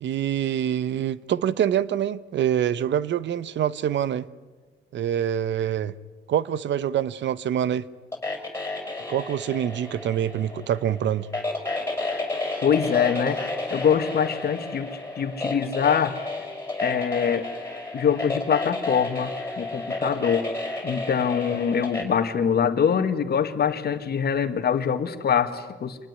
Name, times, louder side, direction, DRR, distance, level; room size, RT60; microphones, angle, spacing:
voice 1, 0.0-4.3 4.9-5.9 6.3-7.8 9.1-11.3, right 10 dB, 65° right, 0.9 m, -25 dB
sound 1, 8.1-22.0, left 2 dB, 15° left, 5.7 m, -31 dB
voice 2, 12.6-16.1 16.8-17.5 17.9-19.3 19.6-20.5 20.8-26.0, left 7 dB, 55° left, 1.9 m, -24 dB
25.5 x 20.0 x 9.6 m
cardioid pair, 90°, 20 cm